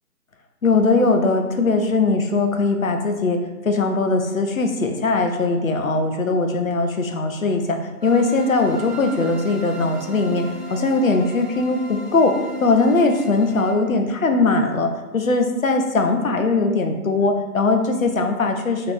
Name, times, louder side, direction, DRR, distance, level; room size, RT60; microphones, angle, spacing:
voice 1, 0.6-3.4 3.6-12.4 12.6-18.9, left 3 dB, 60° left, 5 dB, 0.7 m, -20 dB
sound 1, 8.0-13.7, equal, 35° left, 1.5 m, -36 dB
4.8 x 3.1 x 3.5 m, 1.1 s
figure-of-eight pair, 155°, 46 cm